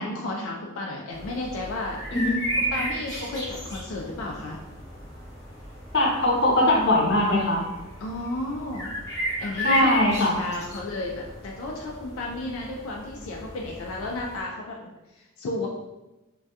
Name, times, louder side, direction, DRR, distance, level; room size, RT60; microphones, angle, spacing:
voice 1, 0.0-2.0 2.6-4.6 8.0-8.9 9.4-15.7, left 2 dB, 90° left, -1 dB, 0.3 m, -33 dB
sound 1, 1.1-14.4, equal, 15° left, 0.8 m, -34 dB
voice 2, 5.9-7.6 9.6-10.3, left 1 dB, 55° left, -3 dB, 0.7 m, -21 dB
2.2 x 2.2 x 2.7 m, 1.0 s
head